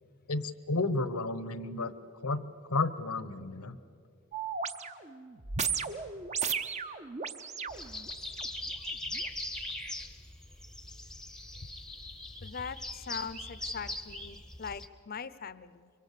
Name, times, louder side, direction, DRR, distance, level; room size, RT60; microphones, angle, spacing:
voice 1, 0.3-1.9 2.2-2.4 2.7-3.8, left 3 dB, 85° left, 14 dB, 1.0 m, -32 dB
sound 1, 4.3-8.5 9.1-9.2, right 6 dB, 30° right, 0.7 m, -35 dB
sound 2, 7.7-14.9, left 1 dB, 5° left, 0.8 m, -41 dB
voice 2, 12.4-15.9, left 6 dB, 45° left, 16 dB, 0.6 m, -41 dB
24.0 x 24.0 x 6.8 m, 2.5 s
head